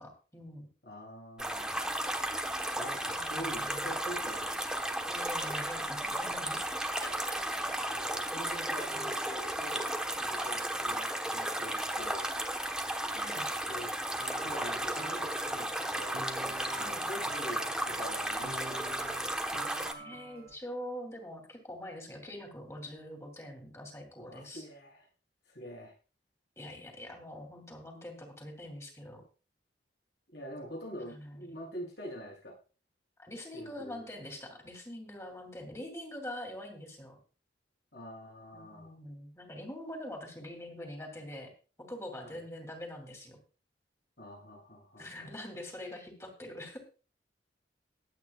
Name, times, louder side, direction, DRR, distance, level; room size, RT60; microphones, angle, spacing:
voice 1, 0.0-0.7 3.1-3.9 5.1-6.6 7.0-7.8 8.3-9.1 13.1-13.5 16.8-17.1 20.0-24.6 26.6-29.2 31.0-31.5 33.2-37.2 38.5-41.5 41.8-43.4 45.0-46.8, left 1 dB, 15° left, 3 dB, 2.8 m, -44 dB
voice 2, 0.8-1.8 2.8-4.5 7.9-9.9 10.1-12.3 13.7-13.9 14.4-19.2 24.2-25.1 25.5-25.9 30.3-32.5 33.5-34.0 37.9-38.9 42.2-42.4 44.2-45.4, equal, 75° left, -2 dB, 7.3 m, -45 dB
sound 1, 1.4-19.9, right 1 dB, 5° right, 1.1 m, -34 dB
sound 2, 14.2-20.5, right 3 dB, 60° right, 1.4 m, -47 dB
21.5 x 8.9 x 2.4 m, 0.35 s
head